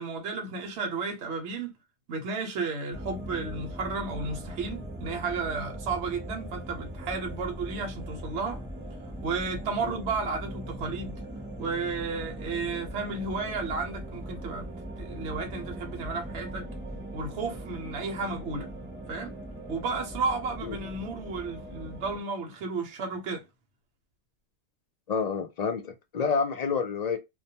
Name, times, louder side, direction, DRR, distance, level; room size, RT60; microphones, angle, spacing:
voice 1, 0.0-1.7 2.1-8.6 9.2-11.2 11.6-14.7 15.0-16.7 17.1-18.7 19.1-19.3 19.7-23.4, right 4 dB, 75° right, 0.9 m, -33 dB
sound 1, 2.9-22.2, right 1 dB, 15° right, 0.5 m, -40 dB
voice 2, 25.1-27.2, left 5 dB, 60° left, 0.4 m, -29 dB
2.2 x 2.1 x 2.7 m
omnidirectional pair, 1.2 m